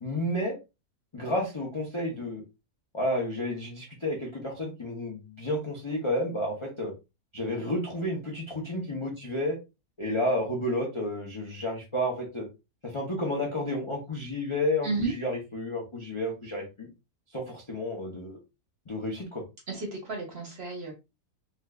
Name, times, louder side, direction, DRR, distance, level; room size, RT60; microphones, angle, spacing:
voice 1, 0.0-0.6 1.1-2.4 2.9-6.9 7.3-9.6 10.0-12.5 12.8-16.9 17.3-18.4 18.9-19.4, left 1 dB, 30° left, -2 dB, 0.5 m, -31 dB
voice 2, 19.7-20.9, right 3 dB, 45° right, 1 dB, 1.1 m, -32 dB
3.3 x 3.0 x 2.3 m, 0.26 s
omnidirectional pair, 1.6 m